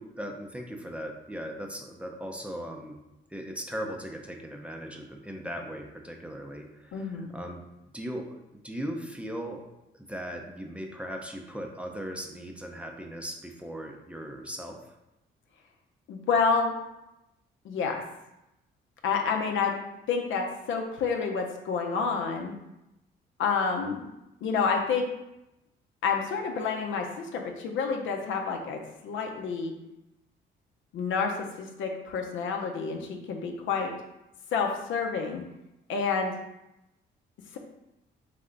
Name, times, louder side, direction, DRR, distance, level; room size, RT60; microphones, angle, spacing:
voice 1, 0.0-3.0 3.3-7.6 7.9-9.7 9.9-15.0, equal, 5° right, 2 dB, 0.6 m, -38 dB
voice 2, 6.9-7.4 16.1-16.7 17.6-18.0 19.0-19.7 20.1-22.5 23.4-24.0 24.4-25.1 26.0-29.7 30.9-33.9 34.5-35.4 35.9-36.3, left 5 dB, 75° left, 2 dB, 0.7 m, -29 dB
3.7 x 3.3 x 3.8 m, 0.91 s
cardioid pair, 90°, 20 cm